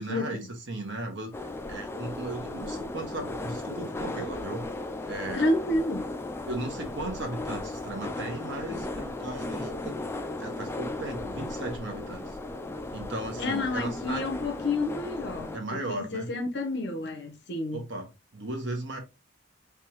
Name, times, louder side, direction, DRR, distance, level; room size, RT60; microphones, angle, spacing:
voice 1, 0.0-4.7 5.1-5.5 6.5-10.0 10.4-12.4 12.9-14.2 15.5-16.3 17.6-19.0, right 2 dB, 65° right, 1.3 m, -36 dB
sound 1, 1.3-15.6, left 2 dB, 15° left, 0.3 m, -36 dB
voice 2, 5.3-6.1 13.4-17.8, left 2 dB, 60° left, 0.9 m, -30 dB
3.5 x 3.4 x 3.0 m
head